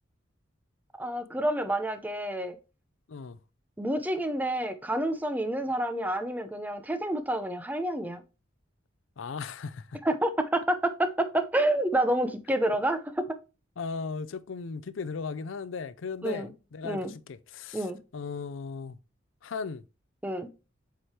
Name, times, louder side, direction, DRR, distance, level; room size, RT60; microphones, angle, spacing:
voice 1, 1.0-2.6 3.8-8.2 10.0-13.4 16.2-16.5 16.8-17.1 17.7-18.0 20.2-20.5, right 1 dB, 10° right, 0.6 m, -28 dB
voice 2, 9.2-10.0 13.8-17.9 18.1-19.0 19.4-19.8, left 5 dB, 75° left, 0.5 m, -37 dB
7.7 x 4.8 x 2.9 m
head